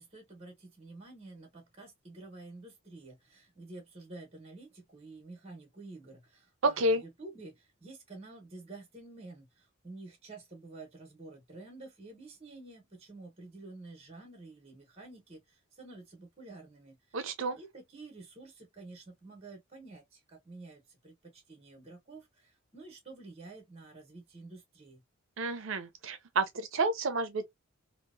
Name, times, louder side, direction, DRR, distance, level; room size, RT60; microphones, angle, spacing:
voice 1, 0.0-17.2 17.5-25.0, right 3 dB, 30° right, 0.8 m, -50 dB
voice 2, 6.6-7.0 17.1-17.6 25.4-27.5, right 2 dB, 65° right, 0.5 m, -30 dB
2.8 x 2.0 x 2.4 m
head